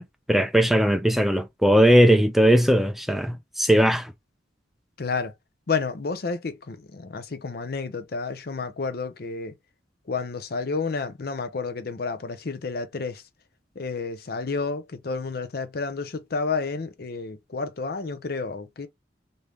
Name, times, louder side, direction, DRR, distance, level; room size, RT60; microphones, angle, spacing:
voice 1, 0.0-4.1, equal, ahead, 0.4 m, -19 dB
voice 2, 5.0-5.3 5.7-9.5 10.1-13.2 13.8-18.9, left 4 dB, 55° left, 0.5 m, -30 dB
3.4 x 2.6 x 3.1 m
head